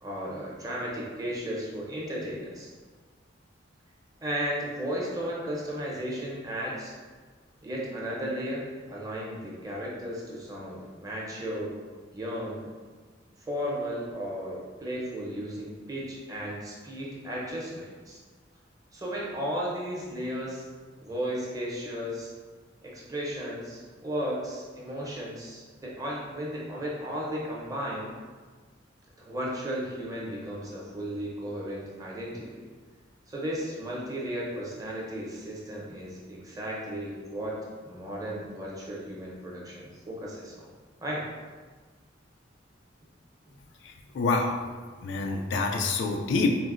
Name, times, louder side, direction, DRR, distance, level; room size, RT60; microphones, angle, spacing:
voice 1, 0.0-2.7 4.2-6.9 7.6-11.7 12.1-12.7 13.5-18.2 18.9-20.6 21.0-22.3 22.8-28.1 29.2-32.6 33.3-40.7 41.0-41.2, equal, 20° right, -5 dB, 0.6 m, -35 dB
voice 2, 43.8-44.6 45.0-46.6, left 3 dB, 65° left, 4 dB, 0.3 m, -27 dB
3.8 x 2.1 x 2.4 m, 1.5 s
head